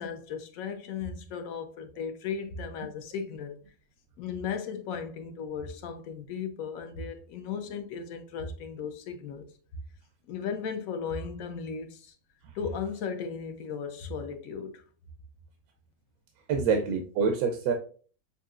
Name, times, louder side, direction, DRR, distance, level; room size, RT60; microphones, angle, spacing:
voice 1, 0.0-3.6 4.2-9.4 10.3-12.1 12.5-14.8, left 6 dB, 70° left, 1.1 m, -36 dB
voice 2, 16.5-17.7, right 5 dB, 80° right, 1.1 m, -26 dB
6.7 x 2.6 x 2.4 m
omnidirectional pair, 1.6 m